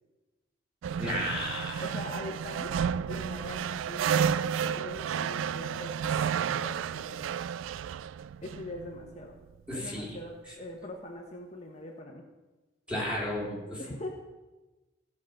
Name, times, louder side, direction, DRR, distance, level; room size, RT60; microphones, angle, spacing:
sound 1, 0.8-9.4, right 8 dB, 85° right, 0.3 m, -31 dB
voice 1, 1.0-1.8 9.7-10.2 12.9-13.8, left 1 dB, 5° right, -6 dB, 3.9 m, -33 dB
voice 2, 1.8-2.8 3.0-7.5 8.4-9.3 9.7-12.3 13.8-14.1, left 1 dB, 35° left, 0 dB, 1.1 m, -42 dB
15.5 x 5.9 x 6.5 m, 1.2 s
head